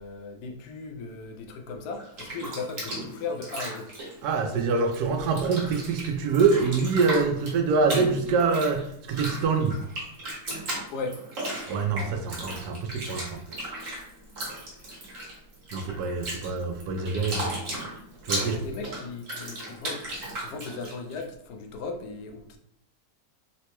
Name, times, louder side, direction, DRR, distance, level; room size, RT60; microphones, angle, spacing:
voice 1, 0.0-3.9 10.9-11.2 17.0-17.3 18.3-22.6, left 4 dB, 85° left, 4 dB, 1.1 m, -37 dB
Bathtub (filling or washing), 1.9-5.0 5.2-21.2, right 1 dB, 60° right, 1.4 m, -36 dB
voice 2, 4.2-9.8 11.7-13.4 15.7-17.5 18.2-18.6, right 4 dB, 90° right, 4 dB, 1.1 m, -25 dB
3.9 x 2.2 x 2.9 m, 0.71 s
omnidirectional pair, 1.6 m